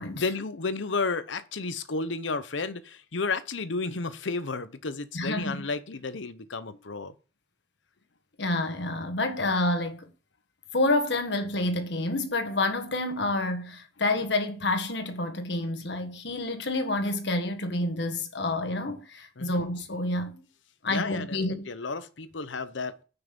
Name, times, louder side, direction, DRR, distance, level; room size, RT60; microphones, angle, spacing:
voice 1, 0.1-7.1 19.4-19.6 20.9-21.4 21.7-23.0, left 4 dB, 85° left, 0.8 m, -32 dB
voice 2, 5.1-5.7 8.4-10.1 10.7-20.4 20.8-21.7, left 2 dB, 65° left, 1.6 m, -28 dB
9.8 x 5.8 x 5.3 m
head